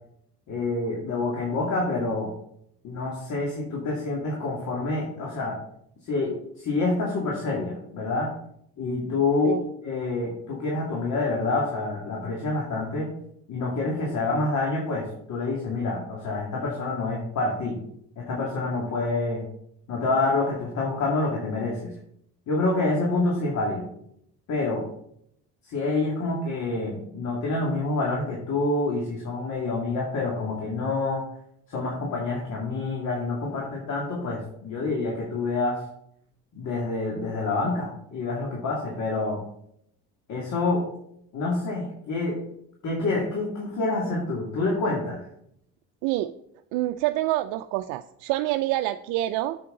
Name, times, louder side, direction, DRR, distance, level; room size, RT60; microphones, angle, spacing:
voice 1, 0.5-2.3 2.8-5.6 6.1-8.3 8.8-9.6 9.8-13.1 13.5-17.8 18.2-19.4 19.9-21.9 22.5-23.9 24.5-24.9 25.7-31.2 31.7-35.8 36.5-39.4 40.3-40.9 41.3-42.4 42.8-45.3, left 3 dB, 60° left, -2 dB, 2.4 m, -27 dB
voice 2, 46.0-46.3 46.7-49.6, right 15 dB, 80° right, 9 dB, 0.5 m, -27 dB
8.5 x 7.8 x 3.8 m, 0.72 s
supercardioid pair, 85°, 32 cm